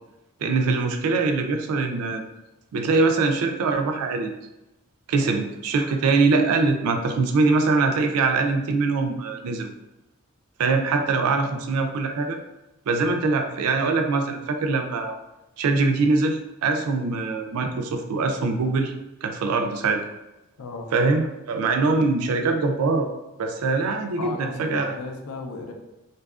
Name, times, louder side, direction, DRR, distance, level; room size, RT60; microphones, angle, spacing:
voice 1, 0.4-2.2 2.7-4.3 5.1-9.7 10.6-12.4 12.9-15.2 15.6-18.9 19.2-20.0 20.9-23.1 23.4-24.9, right 3 dB, 85° right, 5 dB, 0.4 m, -23 dB
voice 2, 24.2-25.7, left 3 dB, 80° left, 3 dB, 0.4 m, -35 dB
2.6 x 2.3 x 2.3 m, 0.97 s
head